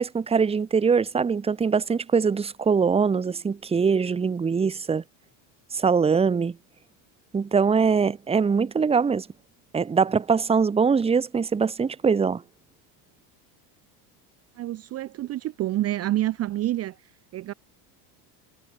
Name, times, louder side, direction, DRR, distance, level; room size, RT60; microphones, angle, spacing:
voice 1, 0.0-5.0 5.7-6.6 7.3-9.3 9.7-12.4, right 5 dB, 10° right, 1.1 m, -22 dB
voice 2, 14.6-16.9 17.3-17.5, right 14 dB, 30° right, 0.8 m, -27 dB
cardioid pair, 160°, 49 cm